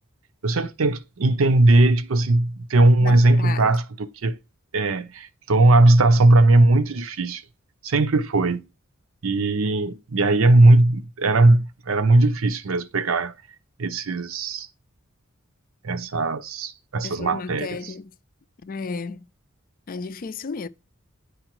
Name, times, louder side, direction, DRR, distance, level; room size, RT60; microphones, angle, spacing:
voice 1, 0.4-4.4 4.7-7.4 7.8-8.6 9.2-13.3 13.8-14.7 15.8-17.8, right 2 dB, 75° right, 0.6 m, -19 dB
voice 2, 3.0-3.7 17.0-18.1 18.6-19.3 19.9-20.7, left 4 dB, 45° left, 0.4 m, -33 dB
9.8 x 4.8 x 3.0 m
head